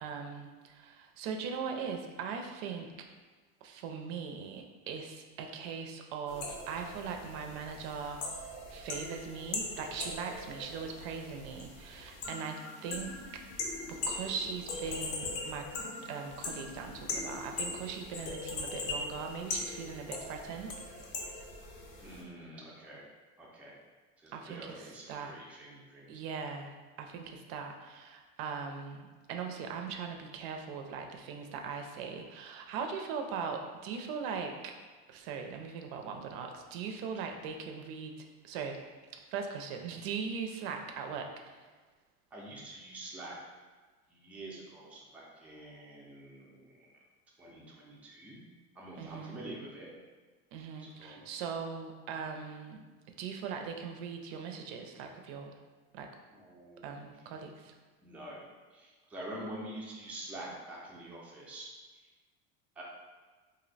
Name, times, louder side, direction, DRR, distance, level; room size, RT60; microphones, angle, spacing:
voice 1, 0.0-2.9 3.6-8.2 8.7-13.4 13.9-15.7 16.1-21.1 24.3-25.4 26.1-34.7 35.1-38.1 38.4-38.8 39.3-41.6 49.0-49.4 50.5-52.8 53.2-55.6 55.9-56.1 56.8-57.7, right 6 dB, 90° right, 4 dB, 0.5 m, -40 dB
sound 1, 6.3-22.2, left 3 dB, 85° left, 0.7 m, -40 dB
voice 2, 22.0-23.0 23.4-23.7 24.2-26.1 42.3-43.3 44.1-47.0 47.4-48.4 48.8-49.9 50.8-51.2 56.3-57.1 58.0-58.4 58.7-62.1 62.8-62.9, right 1 dB, 5° right, -5 dB, 0.3 m, -46 dB
2.6 x 2.1 x 3.9 m, 1.4 s
cardioid pair, 155°, 30 cm